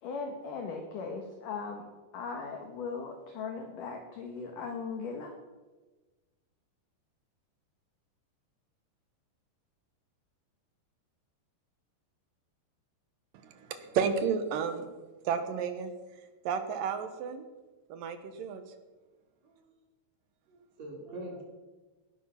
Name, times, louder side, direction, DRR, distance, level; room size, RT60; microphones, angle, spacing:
voice 1, 0.0-1.9 2.1-5.3, left 5 dB, 60° left, 4 dB, 2.4 m, -38 dB
voice 2, 13.4-14.9 15.2-15.9 16.5-17.5 17.9-18.6, right 6 dB, 65° right, 9 dB, 2.3 m, -32 dB
voice 3, 20.5-21.4, right 1 dB, 40° right, 0 dB, 4.4 m, -44 dB
18.5 x 11.5 x 5.8 m, 1.2 s
omnidirectional pair, 5.1 m